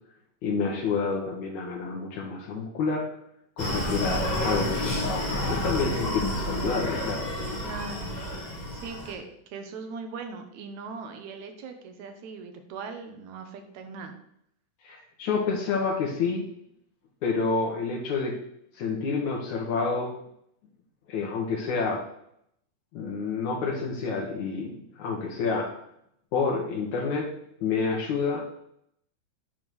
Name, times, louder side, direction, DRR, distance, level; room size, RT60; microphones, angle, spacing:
voice 1, 0.4-3.0 3.6-7.3 14.8-16.4 17.2-18.4 18.8-20.2 21.1-22.0 22.9-25.7 26.3-27.3 27.6-28.4, left 4 dB, 70° left, -1 dB, 2.4 m, -28 dB
Screaming, 3.6-9.1, left 1 dB, 45° left, 0.5 m, -30 dB
voice 2, 3.6-4.3 7.6-8.1 8.7-14.1, right 5 dB, 75° right, 6 dB, 2.2 m, -40 dB
8.9 x 3.5 x 6.2 m, 0.73 s
omnidirectional pair, 3.6 m